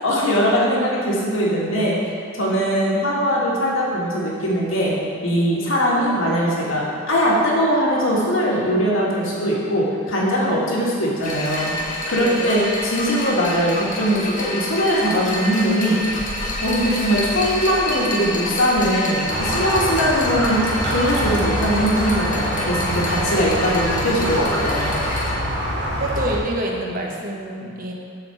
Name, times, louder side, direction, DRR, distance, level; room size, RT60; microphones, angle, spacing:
voice 1, 0.0-1.9 2.3-4.9 5.2-11.7 12.1-16.0 16.6-20.6 20.9-24.9, equal, 85° left, -5 dB, 1.8 m, -21 dB
sound 1, 11.2-25.3, left 1 dB, 40° left, 1.1 m, -28 dB
voice 2, 12.2-12.6 23.2-23.4 26.0-27.9, right 1 dB, 45° right, 0 dB, 1.0 m, -27 dB
Squeak, 19.3-26.4, equal, 60° right, 1.4 m, -24 dB
7.7 x 4.4 x 5.9 m, 2.6 s
head